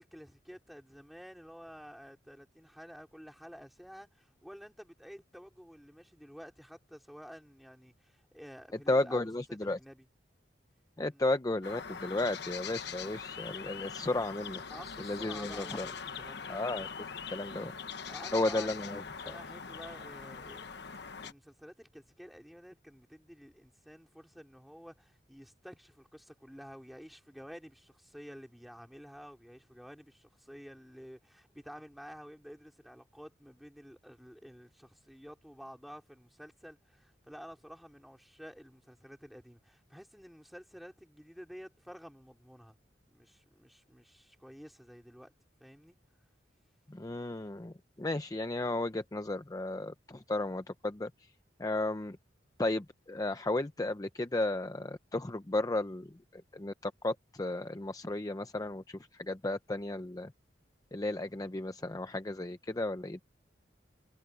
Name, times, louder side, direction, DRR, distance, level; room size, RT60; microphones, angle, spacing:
voice 1, 0.0-10.1 11.1-11.2 14.7-16.6 18.0-18.7 19.2-20.8 21.2-42.8 43.1-45.3 45.6-46.0, equal, ahead, 4.3 m, -51 dB
voice 2, 8.9-9.8 11.0-14.6 15.0-15.9 16.5-16.9 17.3-17.7 18.3-19.4 46.9-51.3 51.6-52.2 52.6-60.3 60.9-63.2, left 2 dB, 20° left, 0.6 m, -34 dB
sound 1, 11.6-21.3, left 6 dB, 65° left, 1.2 m, -42 dB
head